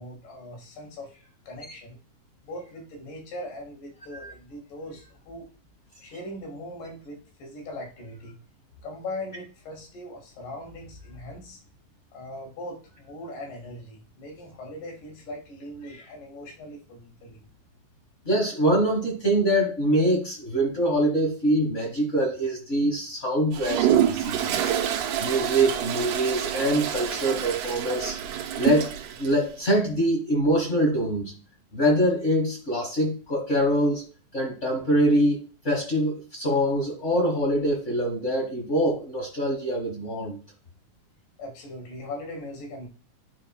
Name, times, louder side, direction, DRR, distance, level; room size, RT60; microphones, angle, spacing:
voice 1, 0.0-2.0 2.4-5.5 6.0-8.4 8.8-11.6 12.1-17.4 41.4-42.9, left 1 dB, 85° left, 1 dB, 3.5 m, -40 dB
voice 2, 18.2-24.6 25.2-28.2 28.6-28.9 29.2-31.3 31.7-34.0 34.3-40.4, right 1 dB, 65° left, 0 dB, 0.7 m, -24 dB
Toilet flush, 23.5-29.3, right 10 dB, 80° right, 2.3 m, -27 dB
9.8 x 4.3 x 2.3 m, 0.37 s
omnidirectional pair, 3.7 m